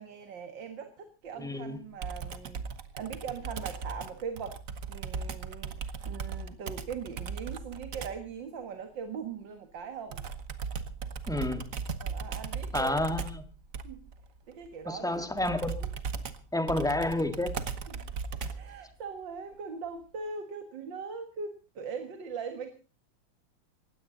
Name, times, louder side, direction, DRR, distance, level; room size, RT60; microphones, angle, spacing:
voice 1, 0.0-2.6 2.9-4.6 4.9-10.2 12.0-13.0 13.8-14.0 14.5-15.3 17.9-18.1 18.5-22.7, right 6 dB, 70° right, 2.4 m, -40 dB
voice 2, 1.4-1.8 11.3-11.7 12.7-13.4 14.8-15.9 16.5-17.5, left 1 dB, ahead, 1.4 m, -30 dB
Computer keyboard, 2.0-8.3 10.1-18.8, right 5 dB, 50° right, 1.4 m, -37 dB
19.5 x 16.0 x 4.0 m
omnidirectional pair, 2.1 m